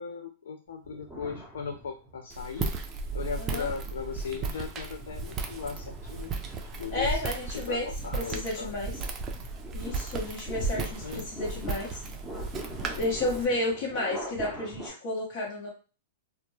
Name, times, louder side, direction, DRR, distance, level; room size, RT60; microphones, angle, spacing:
voice 1, 0.0-6.3 6.8-8.8 11.0-11.3, left 6 dB, 85° left, 4 dB, 0.3 m, -38 dB
sound 1, 0.9-2.3 2.8-14.9, right 1 dB, 5° left, 0.7 m, -44 dB
Walk footsteps, 2.3-13.4, right 4 dB, 25° right, 0.4 m, -35 dB
voice 2, 6.9-7.9 8.1-8.9 9.7-12.0 12.9-15.7, left 2 dB, 55° left, -4 dB, 0.9 m, -32 dB
2.1 x 2.0 x 3.0 m, 0.34 s
hypercardioid pair, 140°, 0 cm